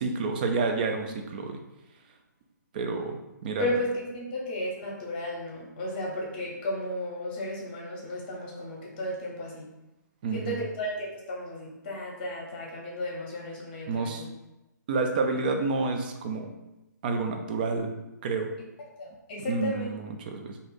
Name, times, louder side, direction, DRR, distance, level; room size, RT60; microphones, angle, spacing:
voice 1, 0.0-1.6 2.7-3.7 10.2-10.6 13.9-14.3 14.9-16.5 17.0-17.9 18.2-18.5 19.5-20.6, right 4 dB, 30° right, 4 dB, 0.4 m, -29 dB
voice 2, 3.6-9.6 10.3-14.3 19.0-19.9, left 1 dB, 30° left, -2 dB, 0.8 m, -34 dB
2.7 x 2.4 x 3.8 m, 0.96 s
figure-of-eight pair, 135°, 10 cm